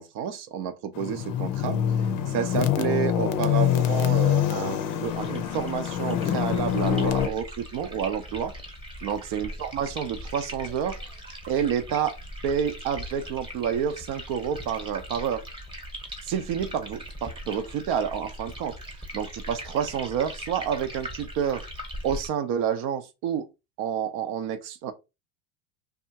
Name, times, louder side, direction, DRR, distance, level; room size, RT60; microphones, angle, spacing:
voice 1, 0.0-1.8 2.3-8.5 9.0-11.0 11.5-12.1 12.4-15.4 16.3-18.8 19.1-21.6 22.0-23.5 23.8-24.9, right 8 dB, 60° right, 0.6 m, -29 dB
sound 1, 0.9-7.3, left 10 dB, 50° left, 0.5 m, -25 dB
sound 2, 5.0-22.3, equal, 10° right, 0.9 m, -40 dB
2.7 x 2.3 x 2.7 m
supercardioid pair, 95°, 43 cm